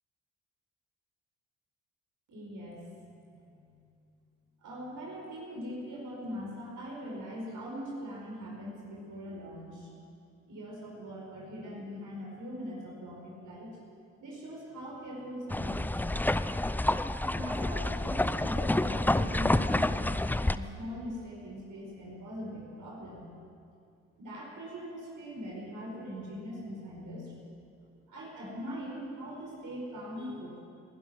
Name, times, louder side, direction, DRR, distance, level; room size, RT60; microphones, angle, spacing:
voice 1, 2.3-3.9 4.6-9.9 10.5-13.7 14.2-16.3 17.3-23.3 24.2-27.3 28.1-30.6, equal, 55° right, -3 dB, 4.8 m, -41 dB
sound 1, 15.5-20.6, left 1 dB, 5° left, 0.5 m, -28 dB
20.5 x 11.5 x 6.0 m, 2.5 s
hypercardioid pair, 50°, 36 cm